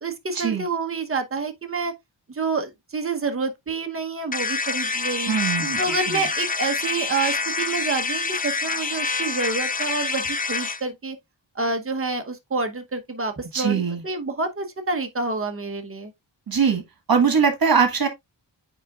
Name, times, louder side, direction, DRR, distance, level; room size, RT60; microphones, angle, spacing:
voice 1, 0.0-1.9 2.3-5.4 5.8-11.2 11.5-16.1, right 3 dB, 30° right, 0.9 m, -28 dB
sound 1, 4.3-10.8, left 4 dB, 20° left, 0.3 m, -26 dB
voice 2, 5.3-5.8 13.5-14.0 16.5-16.8 17.1-18.1, right 6 dB, 50° right, 1.5 m, -21 dB
8.5 x 4.8 x 2.3 m
wide cardioid pair, 145°, 45 cm